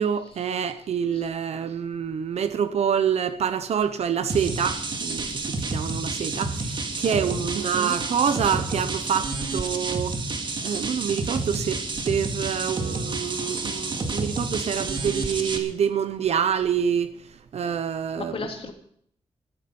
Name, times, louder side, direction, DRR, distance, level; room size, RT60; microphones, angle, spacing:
voice 1, 0.0-17.1 17.5-18.4, right 7 dB, 80° right, 0.9 m, -27 dB
sound 1, 4.3-15.6, right 3 dB, 45° right, 2.1 m, -30 dB
voice 2, 7.0-7.4 18.2-18.7, left 4 dB, 60° left, 2.9 m, -35 dB
14.5 x 14.0 x 5.5 m
wide cardioid pair, 165°, 11 cm